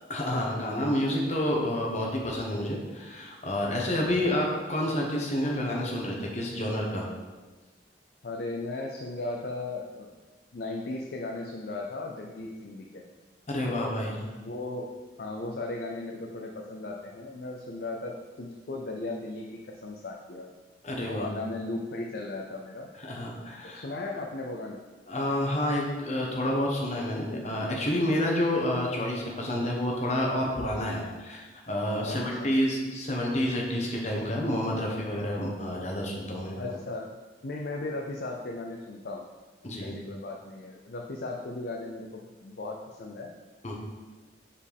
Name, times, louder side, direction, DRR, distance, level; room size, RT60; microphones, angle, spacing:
voice 1, 0.1-7.1 13.5-14.3 20.8-21.4 23.0-23.8 25.1-36.6 39.6-40.0 43.6-43.7, left 1 dB, 40° left, -1 dB, 1.1 m, -29 dB
voice 2, 8.2-10.1 10.5-13.0 13.6-14.1 14.4-14.9 15.2-20.5 21.1-22.9 23.6-24.8 32.1-32.5 36.6-37.2 37.4-39.2 39.8-43.3, left 2 dB, 55° left, 0 dB, 0.5 m, -36 dB
7.3 x 4.3 x 3.5 m, 1.3 s
head